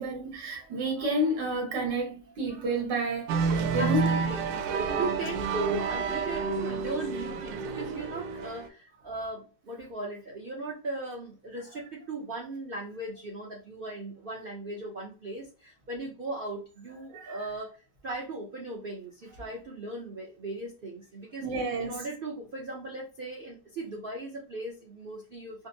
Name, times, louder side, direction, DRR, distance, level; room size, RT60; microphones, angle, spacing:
voice 1, 0.0-4.1 17.1-17.4 21.4-22.0, right 1 dB, 75° right, 1.9 m, -30 dB
sound 1, 3.3-8.7, right 5 dB, 90° right, 1.3 m, -29 dB
voice 2, 3.8-4.5 4.8-17.7 18.0-21.4 21.8-25.7, right 2 dB, 55° right, 0.5 m, -37 dB
5.1 x 2.1 x 2.7 m
omnidirectional pair, 1.9 m